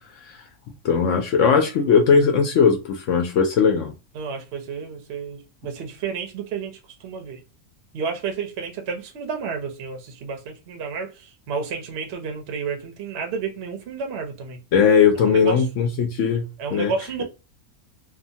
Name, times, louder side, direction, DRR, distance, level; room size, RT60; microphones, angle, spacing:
voice 1, 0.8-3.9 14.7-16.4 16.7-16.9, left 6 dB, 65° left, 0.8 m, -18 dB
voice 2, 4.1-7.4 7.9-14.6 15.2-15.7 16.6-17.2, right 5 dB, 60° right, 0.8 m, -31 dB
2.7 x 2.2 x 2.6 m
omnidirectional pair, 1.6 m